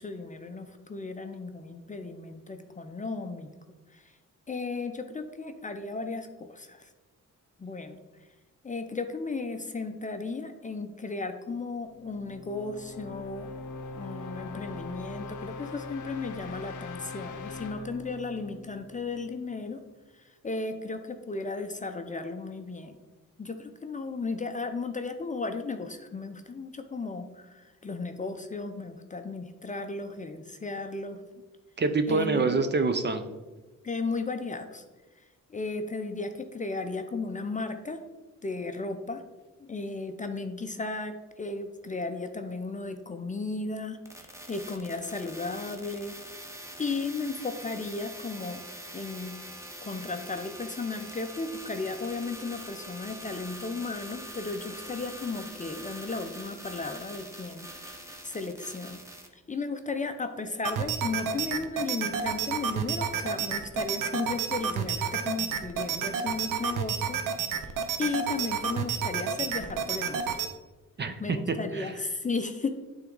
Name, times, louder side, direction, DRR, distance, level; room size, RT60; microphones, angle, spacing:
voice 1, 0.0-3.5 3.9-4.1 4.5-6.9 7.6-8.0 8.6-13.5 13.9-19.8 20.2-22.9 23.4-31.2 32.1-32.5 33.8-34.8 35.5-38.0 38.4-39.2 39.6-44.0 44.2-46.1 46.8-48.6 48.9-49.4 49.8-59.0 59.3-67.2 68.0-70.2 71.2-72.8, left 3 dB, 25° left, 7 dB, 0.5 m, -35 dB
sound 1, 11.8-19.6, left 3 dB, 65° left, 0.7 m, -42 dB
voice 2, 31.8-33.2 71.0-71.9, right 3 dB, 35° right, 9 dB, 0.6 m, -26 dB
sound 2, 44.1-59.3, right 1 dB, 10° right, 0.9 m, -44 dB
sound 3, 60.6-70.5, right 7 dB, 75° right, 0.7 m, -30 dB
8.8 x 3.6 x 3.8 m, 1.2 s
cardioid pair, 90°, 33 cm